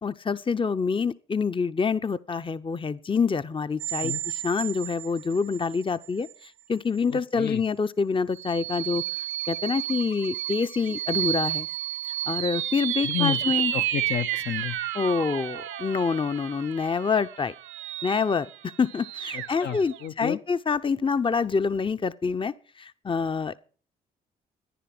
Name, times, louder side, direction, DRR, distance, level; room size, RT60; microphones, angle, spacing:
voice 1, 0.0-9.0 9.5-11.7 12.3-13.7 14.9-17.5 18.0-23.6, left 5 dB, 25° left, 0.7 m, -26 dB
sound 1, 3.8-5.8 6.2-6.3 8.4-20.1, right 12 dB, 80° right, 0.7 m, -31 dB
voice 2, 7.1-7.6 13.0-13.4 13.7-14.8 19.3-20.4, left 11 dB, 60° left, 0.8 m, -31 dB
14.0 x 10.5 x 5.9 m
hypercardioid pair, 45°, 19 cm